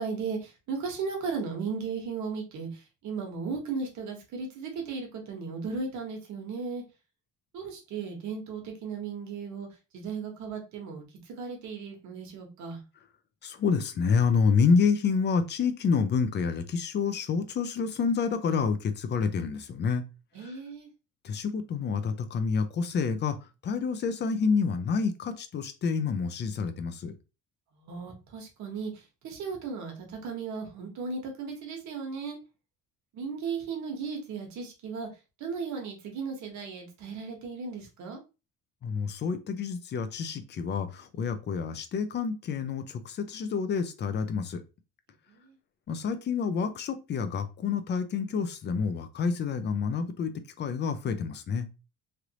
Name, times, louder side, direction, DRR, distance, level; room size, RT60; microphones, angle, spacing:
voice 1, 0.0-6.8 7.5-9.7 9.9-11.0 11.4-12.8 20.3-20.9 27.8-28.9 29.2-32.4 33.1-35.1 35.4-38.2 45.3-45.5, right 5 dB, 65° right, 2 dB, 1.2 m, -36 dB
voice 2, 13.4-20.0 20.4-20.5 21.2-23.4 23.6-27.1 38.8-44.6 45.9-50.3 50.6-51.7, left 5 dB, 35° left, 10 dB, 0.5 m, -28 dB
3.3 x 2.5 x 2.9 m, 0.29 s
cardioid pair, 150°, 31 cm